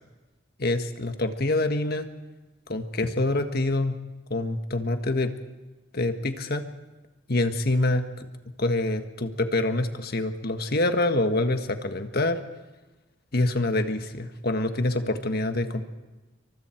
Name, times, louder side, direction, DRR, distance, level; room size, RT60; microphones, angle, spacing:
voice 1, 0.6-2.1 2.7-4.0 4.3-5.3 5.9-6.6 7.3-8.3 8.6-12.4 13.3-15.8, left 2 dB, 55° left, 8 dB, 1.6 m, -26 dB
27.5 x 24.0 x 4.6 m, 1.1 s
head